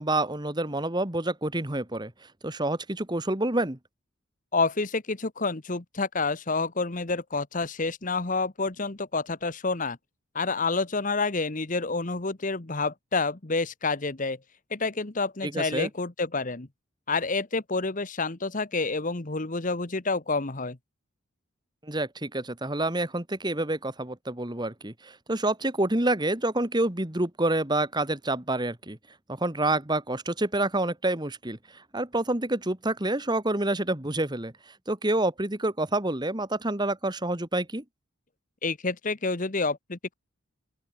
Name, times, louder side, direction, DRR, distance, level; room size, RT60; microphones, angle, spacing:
voice 1, 0.0-3.8 15.4-15.9 21.8-29.0 29.3-37.8, right 2 dB, 20° right, 1.8 m, -28 dB
voice 2, 4.5-10.0 10.3-14.4 14.7-16.7 17.1-20.8 38.6-40.1, left 3 dB, 40° left, 1.3 m, -28 dB
open air
head